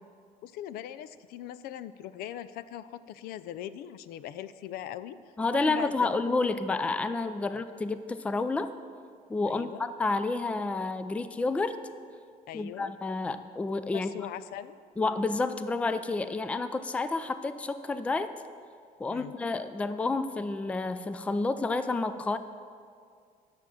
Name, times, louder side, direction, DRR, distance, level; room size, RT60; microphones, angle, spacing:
voice 1, 0.4-5.2 5.5-6.1 7.4-7.6 9.5-9.8 12.5-12.9 13.9-14.8 19.1-19.3, left 11 dB, 75° left, 14 dB, 0.4 m, -40 dB
voice 2, 5.4-8.7 9.3-11.8 12.5-14.3 15.0-18.3 19.0-22.4, left 3 dB, 10° left, 12 dB, 0.3 m, -30 dB
9.9 x 6.2 x 7.0 m, 2.2 s
cardioid pair, 150°, 16 cm